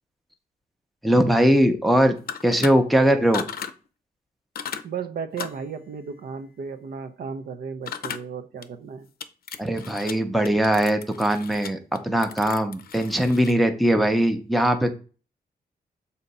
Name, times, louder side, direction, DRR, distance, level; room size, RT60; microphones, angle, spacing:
voice 1, 1.0-2.2 2.4-3.4 9.6-11.8 12.0-14.9, equal, ahead, 0.6 m, -20 dB
sound 1, 2.2-2.7 3.3-3.7 4.5-4.8 5.4-5.6 7.9-8.2 8.6-8.7 9.2-10.1 10.4-13.6, left 7 dB, 70° left, 0.5 m, -35 dB
voice 2, 4.8-9.1, right 6 dB, 70° right, 0.6 m, -34 dB
7.1 x 2.8 x 5.3 m
wide cardioid pair, 175°, 16 cm